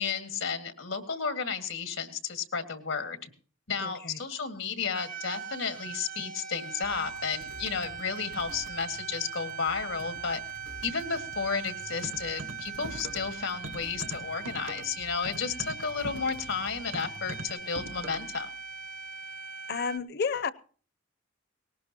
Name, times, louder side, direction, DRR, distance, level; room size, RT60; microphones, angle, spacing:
voice 1, 0.0-3.2 3.7-10.4 10.8-18.5, left 5 dB, 90° left, 8 dB, 2.0 m, -32 dB
voice 2, 3.8-4.2 19.7-20.5, left 5 dB, 55° left, 16 dB, 0.7 m, -31 dB
sound 1, 4.9-20.0, right 6 dB, 45° right, 0.6 m, -41 dB
sound 2, 6.8-17.5, equal, 90° right, 4.2 m, -51 dB
sound 3, 12.0-13.4 13.6-18.4, right 2 dB, 70° right, 0.9 m, -42 dB
19.0 x 18.5 x 2.9 m, 0.42 s
head